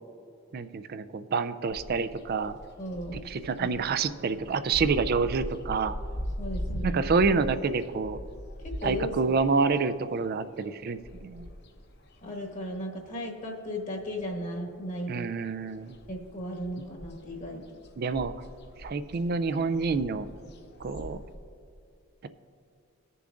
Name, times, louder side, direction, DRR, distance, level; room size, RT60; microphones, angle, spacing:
voice 1, 0.5-2.6 3.1-6.0 6.8-8.2 8.8-11.5 15.1-16.0 18.0-18.3 18.8-20.3 20.8-21.2, right 4 dB, 45° right, 12 dB, 0.4 m, -28 dB
sound 1, 1.7-13.3 13.6-14.9 15.2-21.3, equal, 50° left, 0.9 m, -40 dB
voice 2, 2.8-3.2 3.6-3.7 6.4-7.0 8.6-9.4 12.2-15.3 16.1-17.6, equal, 35° left, 0 dB, 1.1 m, -36 dB
18.5 x 6.8 x 2.5 m, 2.4 s
head